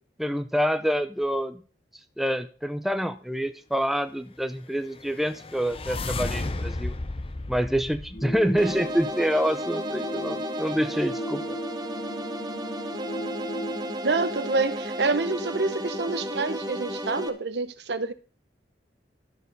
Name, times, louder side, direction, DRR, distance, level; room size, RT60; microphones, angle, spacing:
voice 1, 0.2-1.6 2.2-6.9 7.5-11.6, equal, ahead, 0.6 m, -27 dB
sound 1, 4.9-9.0, left 2 dB, 30° left, 0.7 m, -34 dB
sound 2, 8.1-14.0, equal, 50° left, 1.6 m, -37 dB
sound 3, 8.6-17.3, equal, 25° right, 1.1 m, -33 dB
voice 2, 14.0-18.1, right 3 dB, 70° right, 0.9 m, -27 dB
13.0 x 6.7 x 5.3 m
head